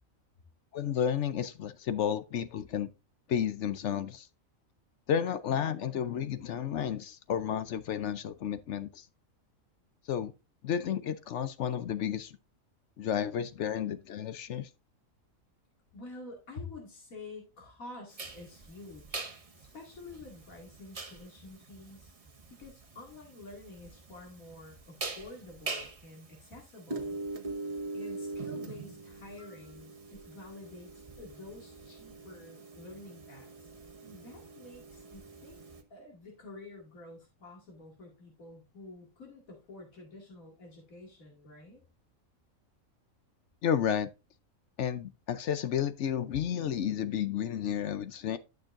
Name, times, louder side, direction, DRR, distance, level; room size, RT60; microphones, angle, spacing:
voice 1, 0.7-2.9 3.3-4.3 5.1-9.0 10.1-10.3 10.6-12.4 13.0-14.7 43.6-44.1 44.8-48.4, left 9 dB, 65° left, 0.9 m, -32 dB
voice 2, 15.9-19.2 19.6-22.1 22.6-27.2 27.9-33.5 34.0-35.6 35.9-41.8, left 3 dB, 85° left, 2.7 m, -49 dB
sound 1, 18.2-35.8, right 3 dB, 30° right, 0.9 m, -42 dB
11.5 x 6.4 x 2.5 m
omnidirectional pair, 1.4 m